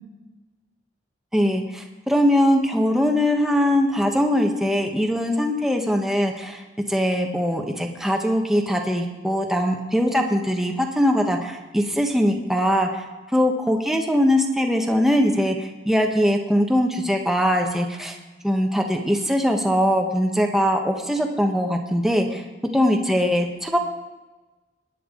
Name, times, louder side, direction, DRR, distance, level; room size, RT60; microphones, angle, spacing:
voice 1, 1.3-6.6 6.9-13.0 13.3-18.2 18.4-22.4 22.7-23.8, equal, ahead, 2 dB, 1.2 m, -21 dB
17.5 x 10.5 x 3.9 m, 1.2 s
head